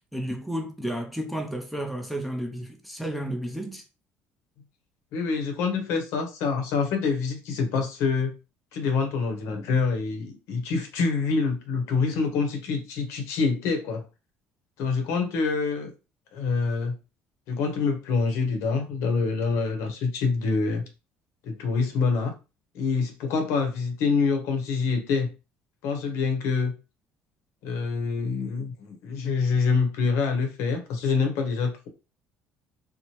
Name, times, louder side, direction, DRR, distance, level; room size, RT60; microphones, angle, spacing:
voice 1, 0.1-3.8, right 1 dB, ahead, 0.5 m, -32 dB
voice 2, 5.1-8.3 8.7-14.1 14.8-15.9 16.3-16.9 17.5-20.8 21.4-22.3 22.7-25.3 25.8-26.7 27.6-31.9, left 4 dB, 80° left, 0.7 m, -26 dB
2.8 x 2.0 x 2.9 m
cardioid pair, 110°, 5 cm